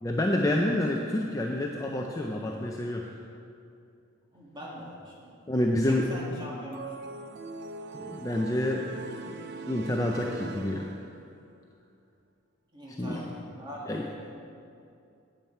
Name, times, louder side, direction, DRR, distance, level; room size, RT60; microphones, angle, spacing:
voice 1, 0.0-3.0 5.5-6.0 7.9-8.8 9.3-9.4 9.7-10.9 13.0-13.2 13.9-14.0, left 1 dB, 15° left, 0 dB, 0.4 m, -28 dB
voice 2, 4.3-5.4 5.8-6.9 12.7-14.3, equal, 20° right, -5 dB, 1.9 m, -42 dB
sound 1, 6.7-11.4, right 4 dB, 50° right, 0.4 m, -41 dB
8.9 x 8.7 x 4.5 m, 2.5 s
head